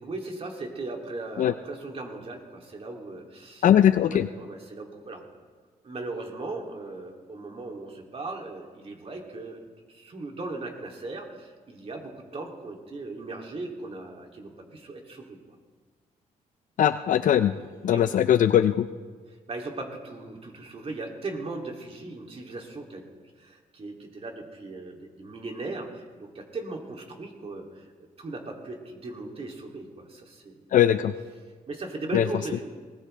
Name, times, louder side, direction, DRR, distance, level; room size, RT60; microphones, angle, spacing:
voice 1, 0.0-3.6 4.1-5.2 5.8-15.4 17.9-18.1 19.5-23.0 23.4-27.9 28.2-30.6 31.7-32.6, right 2 dB, 40° right, 1 dB, 2.9 m, -38 dB
voice 2, 3.6-4.3 16.8-17.5 17.8-18.9 30.7-31.1 32.1-32.3, left 10 dB, 65° left, 11 dB, 0.5 m, -20 dB
20.0 x 19.0 x 3.4 m, 1.5 s
cardioid pair, 85°, 15 cm